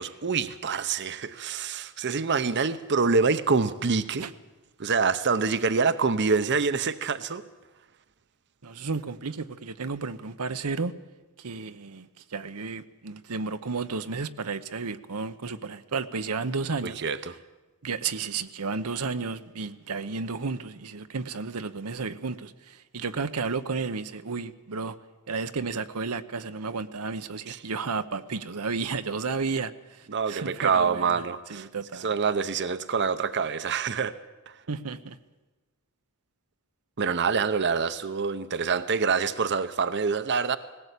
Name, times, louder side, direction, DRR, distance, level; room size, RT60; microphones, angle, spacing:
voice 1, 0.0-4.2 4.8-7.4 16.8-17.3 27.5-27.6 30.1-31.7 32.0-34.2 37.0-40.6, right 5 dB, 55° right, 0.7 m, -26 dB
voice 2, 8.6-10.9 11.4-17.0 17.8-25.0 25.3-31.2 31.5-32.1 34.7-35.2, right 4 dB, 90° right, 0.9 m, -32 dB
19.5 x 17.0 x 8.3 m
head